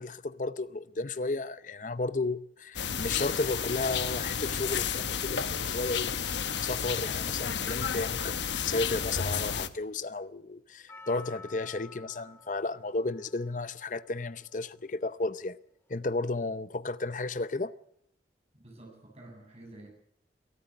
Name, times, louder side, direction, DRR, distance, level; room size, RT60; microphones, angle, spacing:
voice 1, 0.0-6.1 6.6-15.6 15.9-17.7, left 3 dB, 45° left, 0.7 m, -33 dB
sound 1, 2.7-9.7, left 7 dB, 85° left, 1.1 m, -32 dB
Percussion, 10.9-15.2 15.9-16.0, left 3 dB, 15° left, 2.9 m, -52 dB
voice 2, 18.5-19.9, right 1 dB, 35° right, 7.9 m, -50 dB
23.5 x 13.0 x 8.6 m
head